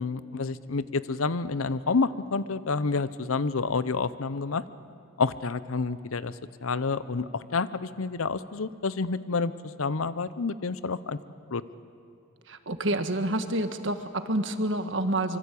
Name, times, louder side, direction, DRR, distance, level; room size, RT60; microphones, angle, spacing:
voice 1, 0.0-4.6 5.2-6.3 6.6-9.5 9.8-11.2 11.5-11.6, left 4 dB, 85° left, 15 dB, 0.8 m, -29 dB
voice 2, 12.5-15.4, right 1 dB, 60° right, 8 dB, 1.6 m, -28 dB
25.0 x 25.0 x 8.5 m, 2.5 s
head